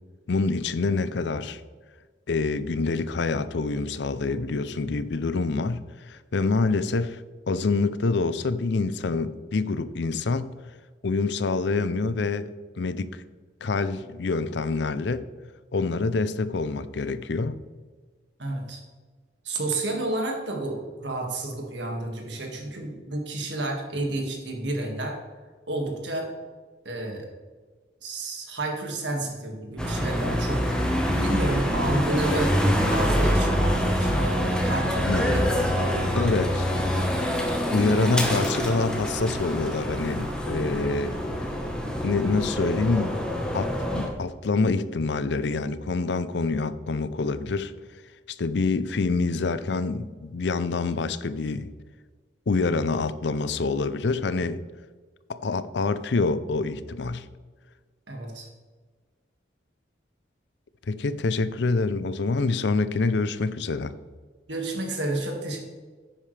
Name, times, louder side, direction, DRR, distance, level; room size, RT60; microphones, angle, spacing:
voice 1, 0.3-1.6 2.3-7.2 7.5-10.5 11.0-13.2 13.6-15.3 15.7-17.5 35.1-35.3 36.1-36.7 37.7-41.2 42.0-43.2 43.5-47.7 48.3-51.7 52.5-54.6 55.3-57.3 60.9-64.0, left 3 dB, 70° left, 14 dB, 0.5 m, -26 dB
voice 2, 18.4-18.8 19.4-25.2 25.7-26.3 26.8-27.3 28.0-30.8 31.2-32.5 32.9-36.4 58.1-58.5 64.5-65.6, right 2 dB, 70° right, 1 dB, 2.0 m, -30 dB
sound 1, 29.8-44.1, equal, 5° left, 1.2 m, -25 dB
10.5 x 8.8 x 3.4 m, 1.4 s
head